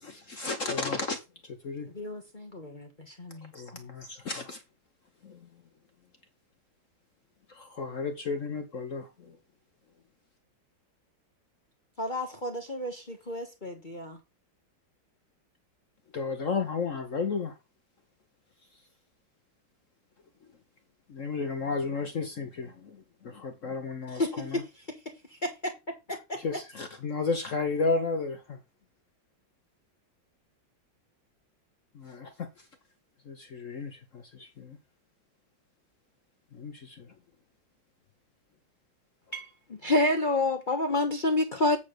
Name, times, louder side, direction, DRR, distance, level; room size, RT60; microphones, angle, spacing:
voice 1, 0.0-1.2 1.6-1.9 3.5-4.6 5.2-5.5 7.5-9.4 16.1-17.5 21.1-24.6 26.4-28.6 31.9-32.5 33.3-34.8 36.5-37.1, left 4 dB, 50° left, 1.1 m, -33 dB
voice 2, 1.9-3.9 12.0-14.2 24.1-25.0 25.3-26.4, left 1 dB, 30° left, 1.3 m, -36 dB
voice 3, 39.3-41.8, left 2 dB, 90° left, 0.4 m, -25 dB
8.5 x 3.7 x 6.6 m
omnidirectional pair, 2.1 m